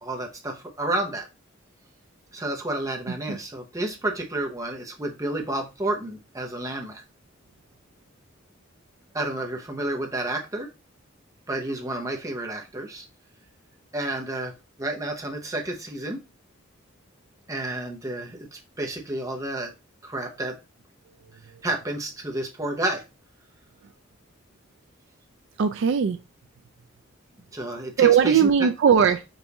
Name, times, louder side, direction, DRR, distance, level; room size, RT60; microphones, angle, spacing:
voice 1, 0.0-1.3 2.3-7.0 9.1-10.7 11.5-13.0 13.9-14.5 14.8-16.2 17.5-19.7 20.0-20.6 21.6-23.0 27.5-28.5, right 1 dB, 15° right, 0.8 m, -30 dB
voice 2, 3.1-3.4 25.6-26.2 28.0-29.2, right 7 dB, 65° right, 0.3 m, -19 dB
5.3 x 2.6 x 2.8 m
head